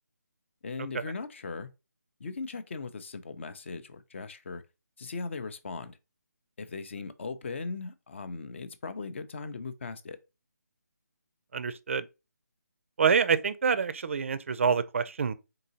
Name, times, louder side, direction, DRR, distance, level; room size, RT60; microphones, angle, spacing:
voice 1, 0.6-1.7 2.2-4.6 5.0-6.0 6.6-10.2, left 4 dB, 40° left, 0.5 m, -38 dB
voice 2, 11.5-12.1 13.0-15.3, right 6 dB, 45° right, 0.4 m, -26 dB
3.8 x 3.8 x 2.8 m
hypercardioid pair, 165°, 10 cm